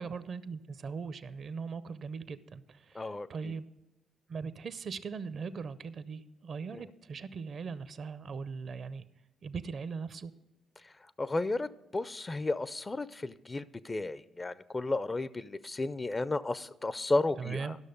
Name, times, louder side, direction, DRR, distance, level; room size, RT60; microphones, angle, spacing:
voice 1, 0.0-3.6 4.3-9.0 9.4-10.3 17.4-17.8, right 5 dB, 55° right, 16 dB, 0.5 m, -40 dB
voice 2, 2.9-3.6 6.7-6.9 11.2-17.8, left 2 dB, 30° left, 17 dB, 0.4 m, -33 dB
12.0 x 6.4 x 5.2 m, 0.98 s
hypercardioid pair, 45°, 0 cm